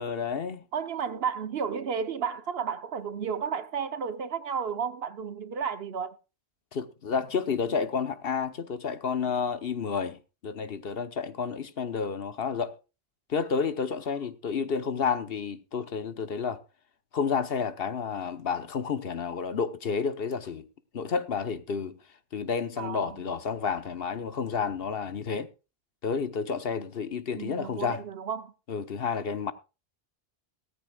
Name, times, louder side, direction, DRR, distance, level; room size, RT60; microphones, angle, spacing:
voice 1, 0.0-0.6 6.7-12.7 13.3-16.6 17.1-20.6 20.9-22.0 22.3-25.5 26.0-28.0 28.7-29.5, left 6 dB, 60° left, 1.1 m, -30 dB
voice 2, 0.7-6.1 22.8-23.3 27.3-28.5, right 6 dB, 65° right, 1.1 m, -32 dB
17.0 x 14.0 x 2.3 m
omnidirectional pair, 1.1 m